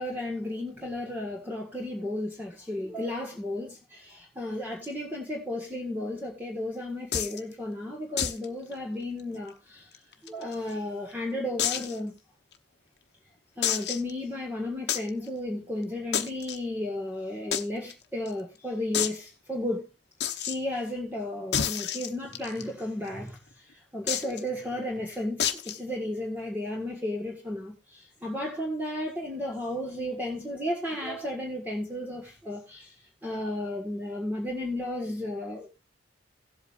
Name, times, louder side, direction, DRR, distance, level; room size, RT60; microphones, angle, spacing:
voice 1, 0.0-9.9 10.2-12.1 13.6-19.8 20.4-23.4 23.9-32.9 33.2-35.7, left 1 dB, 10° right, 1.6 m, -33 dB
sound 1, 7.1-7.4 8.2-8.4 8.7-8.8 9.2-9.3 9.9-10.7 11.6-12.0 12.5-12.6 13.6-14.1 14.9-15.1 16.1-16.6 17.5-17.6 17.9-18.0 18.3-18.4 18.9-19.2 20.2-20.6 21.5-22.6 24.1-24.4 25.4-25.8, left 9 dB, 60° left, 0.9 m, -29 dB
17.5 x 8.0 x 2.5 m
head